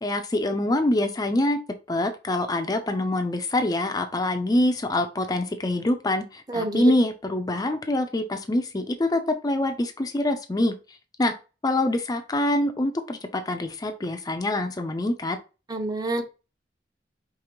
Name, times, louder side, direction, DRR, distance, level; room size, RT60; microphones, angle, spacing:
voice 1, 0.0-1.6 1.9-10.7 11.2-11.3 11.6-15.4, left 1 dB, 20° left, 7 dB, 0.4 m, -25 dB
voice 2, 6.5-6.9 15.7-16.2, right 2 dB, 25° right, 5 dB, 0.7 m, -27 dB
5.0 x 3.0 x 2.9 m, 0.31 s
head